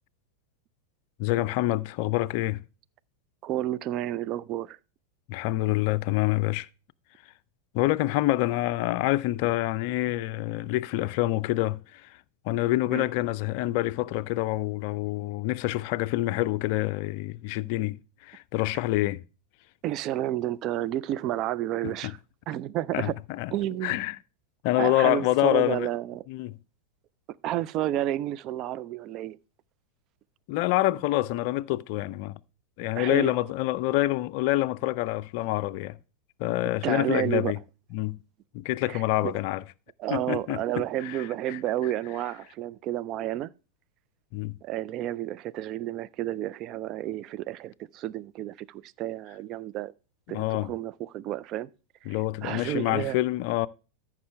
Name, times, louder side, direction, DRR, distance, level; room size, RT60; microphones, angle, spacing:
voice 1, 1.2-2.6 5.3-6.7 7.7-12.2 12.4-19.2 21.8-22.1 22.9-23.5 23.8-24.2 24.6-25.9 26.3-26.6 30.5-32.4 32.8-36.0 36.4-37.6 37.9-38.2 38.5-39.6 40.1-41.6 44.3-44.6 50.3-50.7 52.1-53.7, left 17 dB, 45° left, 0.4 m, -27 dB
voice 2, 3.4-4.8 12.9-13.0 19.8-22.2 22.5-23.1 23.5-24.0 24.8-26.2 27.4-29.4 32.9-33.3 36.8-37.5 38.9-39.3 40.0-43.5 44.6-49.9 50.3-51.7 52.0-52.2 52.4-53.2, right 13 dB, 35° right, 0.4 m, -31 dB
13.5 x 6.0 x 3.2 m
figure-of-eight pair, 90°, 0 cm